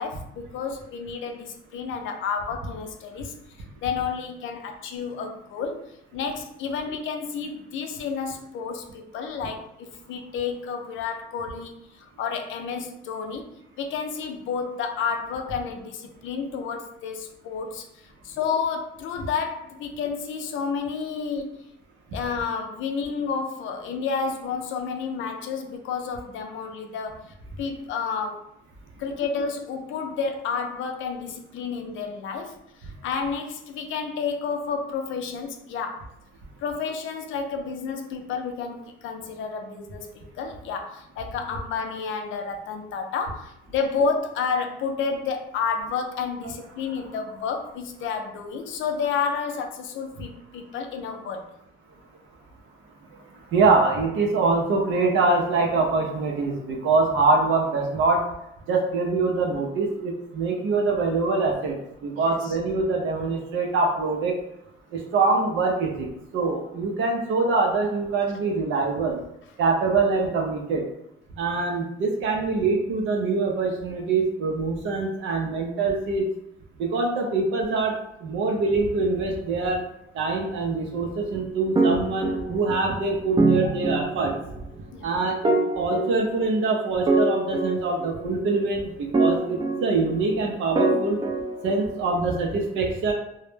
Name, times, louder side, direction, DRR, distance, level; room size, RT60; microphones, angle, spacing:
voice 1, 0.0-3.4 3.8-13.5 13.8-21.5 22.1-28.5 29.0-36.1 36.6-51.5 62.2-62.6 83.6-83.7 84.9-85.1, left 5 dB, 80° left, 5 dB, 0.4 m, -30 dB
voice 2, 53.5-58.2 58.7-64.4 64.9-66.1 66.3-69.2 69.6-70.8 71.4-76.3 76.8-77.9 78.2-79.8 80.1-84.3 85.0-91.2 91.6-93.1, right 3 dB, 80° right, 1 dB, 0.5 m, -24 dB
sound 1, 81.7-82.9 83.4-84.5 85.4-86.6 87.1-88.5 89.1-90.3 90.7-92.2, right 2 dB, 25° right, 0.4 m, -24 dB
2.1 x 2.0 x 3.1 m, 0.80 s
cardioid pair, 90°, 20 cm